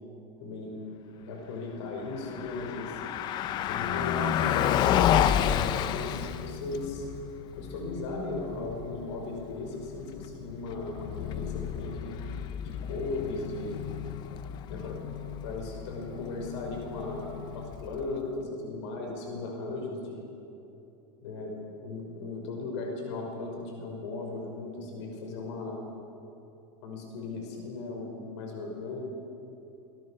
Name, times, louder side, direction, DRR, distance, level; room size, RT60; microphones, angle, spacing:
voice 1, 0.4-0.8 1.2-3.0 3.7-7.1 7.6-12.1 12.6-13.9 14.7-15.0 15.4-20.3 21.2-21.5 21.8-25.8 26.8-29.0, left 3 dB, 75° left, 1 dB, 5.6 m, -37 dB
Car passing by, 2.1-18.2, left 10 dB, 30° left, 0.6 m, -31 dB
25.5 x 22.0 x 6.6 m, 2.9 s
supercardioid pair, 170°, 15 cm